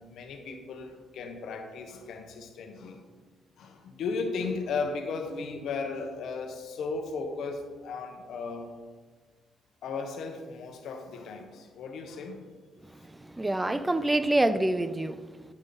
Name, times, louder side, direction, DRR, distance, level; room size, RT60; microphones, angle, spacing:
voice 1, 0.0-3.0 3.6-8.7 9.8-12.5, left 4 dB, 70° left, 5 dB, 1.2 m, -36 dB
voice 2, 12.8-15.5, right 1 dB, 15° right, 12 dB, 0.5 m, -27 dB
9.8 x 5.1 x 4.0 m, 1.4 s
cardioid pair, 90°, 0 cm